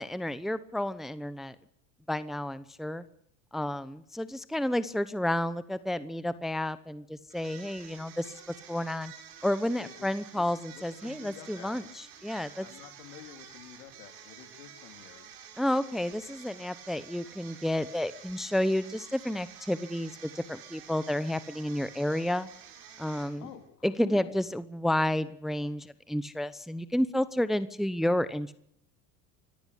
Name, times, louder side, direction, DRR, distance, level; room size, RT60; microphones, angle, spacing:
voice 1, 0.0-1.5 2.1-3.0 3.5-8.4 8.7-9.1 9.4-12.7 15.6-22.5 23.0-23.5 23.8-28.5, left 1 dB, ahead, 15 dB, 0.9 m, -31 dB
sound 1, 7.3-23.6, right 8 dB, 70° right, 5.9 m, -50 dB
voice 2, 9.8-10.1 10.3-10.4 10.7-11.8 12.6-15.3 23.4-23.6 24.1-24.4, left 11 dB, 75° left, 7 dB, 3.6 m, -49 dB
25.0 x 14.5 x 8.4 m, 0.69 s
hypercardioid pair, 95°, 47 cm